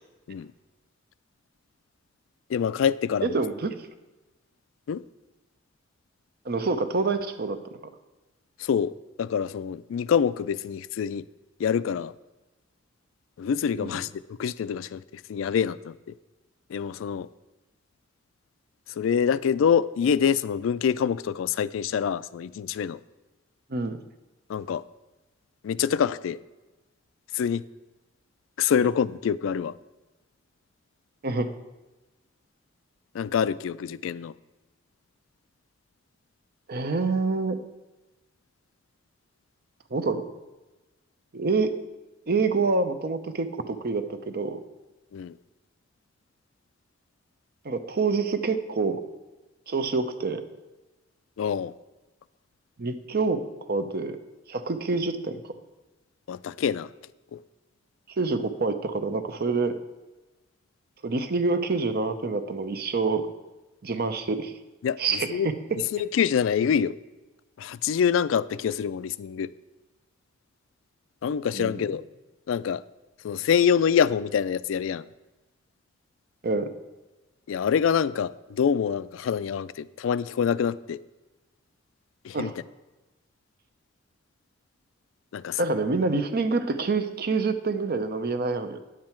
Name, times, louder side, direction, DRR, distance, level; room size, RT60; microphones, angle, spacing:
voice 1, 2.5-3.4 4.9-5.0 8.6-11.2 11.6-12.1 13.4-15.0 15.3-15.9 16.7-17.3 19.0-23.0 24.5-24.8 25.6-26.4 27.3-27.6 28.6-29.7 33.1-34.3 45.1-45.4 51.4-51.7 56.3-56.9 57.3-57.4 64.8-65.0 65.3-65.5 65.9-66.9 67.6-69.5 71.2-72.0 72.5-72.8 73.2-75.0 77.5-81.0 82.2-82.5 85.3-85.6, left 7 dB, 80° left, 17 dB, 0.3 m, -25 dB
voice 2, 3.2-3.8 6.5-7.6 13.8-13.9 23.7-24.0 31.2-31.5 36.7-37.6 39.9-40.2 41.3-41.7 42.3-44.6 47.6-49.0 49.7-50.4 52.8-53.4 53.7-54.2 54.5-55.4 58.2-59.8 61.0-63.2 63.8-64.5 65.0-65.5 71.5-71.8 76.4-76.7 82.3-82.5 85.6-88.8, right 3 dB, 55° right, 9 dB, 0.7 m, -26 dB
9.6 x 7.4 x 4.5 m, 1.1 s
head